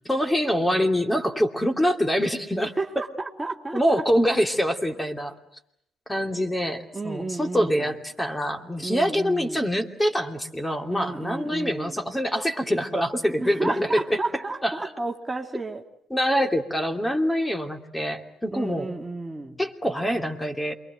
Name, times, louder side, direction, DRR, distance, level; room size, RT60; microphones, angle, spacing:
voice 1, 0.1-2.7 3.7-5.3 6.1-14.7 16.1-18.9 19.6-20.7, equal, 10° left, 6 dB, 2.8 m, -25 dB
voice 2, 2.5-4.0 6.9-7.9 8.8-9.7 10.9-12.0 13.4-15.8 18.5-19.6, right 3 dB, 20° right, 2 dB, 2.2 m, -32 dB
28.0 x 22.5 x 7.9 m, 0.77 s
hypercardioid pair, 55°, 0 cm